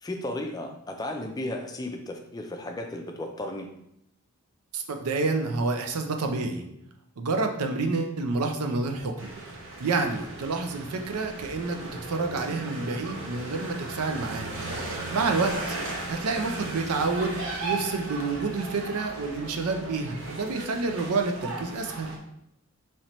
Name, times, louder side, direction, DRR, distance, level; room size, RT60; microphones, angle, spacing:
voice 1, 0.0-3.7, left 1 dB, 15° left, 3 dB, 0.3 m, -34 dB
voice 2, 4.7-6.6 7.2-9.3 9.8-14.6 14.8-15.5 16.1-22.1, right 3 dB, 90° right, 5 dB, 0.5 m, -28 dB
sound 1, 9.2-22.2, right 2 dB, 60° right, 0.8 m, -36 dB
4.2 x 3.1 x 3.0 m, 0.77 s
head